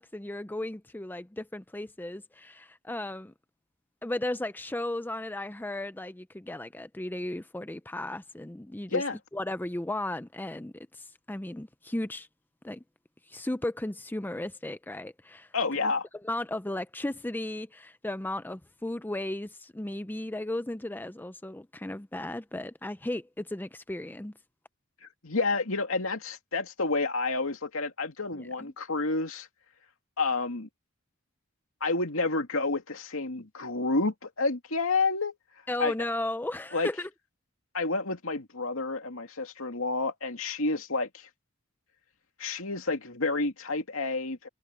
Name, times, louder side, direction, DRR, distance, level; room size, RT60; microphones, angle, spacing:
voice 1, 0.0-3.3 4.0-9.0 9.3-12.3 12.6-12.8 13.3-15.5 16.2-24.3 28.3-28.7 35.7-37.1, left 1 dB, 10° left, 0.5 m, -35 dB
voice 2, 15.5-16.1 25.0-29.5 30.2-30.7 31.8-35.3 35.8-35.9 36.7-36.9 37.7-41.3 42.4-44.5, left 3 dB, 75° left, 2.5 m, -29 dB
head